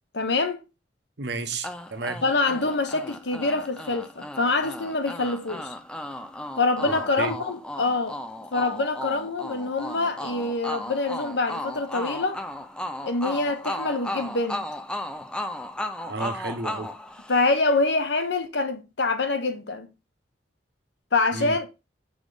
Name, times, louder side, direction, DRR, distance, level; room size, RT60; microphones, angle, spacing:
voice 1, 0.1-0.6 2.2-5.7 6.6-8.2 8.5-12.4 13.0-14.7 17.3-19.9 21.1-21.7, left 3 dB, 65° left, 1.0 m, -25 dB
voice 2, 1.2-2.2 6.8-7.3 16.1-16.9 21.3-21.6, right 3 dB, 60° right, 0.9 m, -32 dB
sound 1, 1.6-17.8, left 1 dB, 5° left, 0.4 m, -35 dB
7.2 x 3.5 x 3.9 m
head